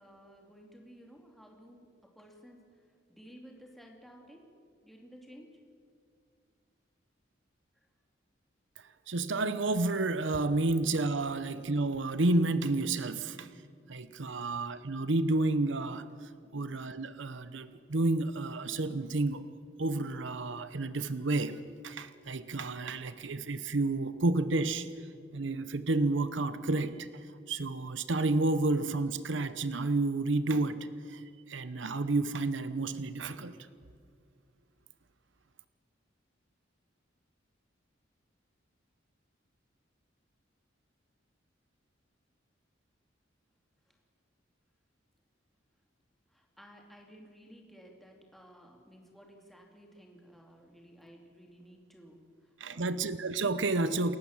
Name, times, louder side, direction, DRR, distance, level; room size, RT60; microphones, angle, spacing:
voice 1, 0.0-4.5 4.8-5.6 7.7-7.9 43.9-44.0 46.3-53.1, equal, ahead, 1 dB, 2.6 m, -55 dB
voice 2, 8.8-13.5 13.9-19.5 19.8-24.9 25.3-33.6 52.6-54.2, right 2 dB, 70° right, 13 dB, 0.9 m, -31 dB
28.5 x 15.0 x 7.3 m, 2.2 s
head